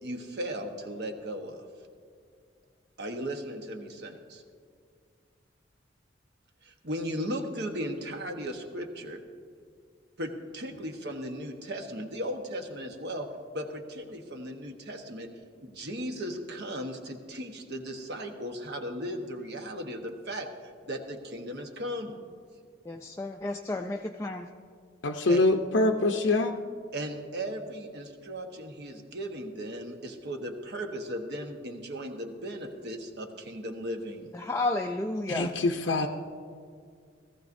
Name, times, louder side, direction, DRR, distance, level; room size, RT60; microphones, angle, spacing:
voice 1, 0.0-1.7 3.0-4.4 6.6-9.2 10.2-13.3 13.5-15.3 15.6-22.1 25.3-25.4 26.9-34.3, equal, 60° right, 4 dB, 1.2 m, -37 dB
voice 2, 22.9-24.5 34.4-35.5, left 2 dB, 15° left, 3 dB, 0.4 m, -32 dB
voice 3, 25.0-26.5 35.3-36.1, left 2 dB, 85° left, 3 dB, 0.6 m, -24 dB
17.5 x 14.5 x 2.6 m, 2.2 s
head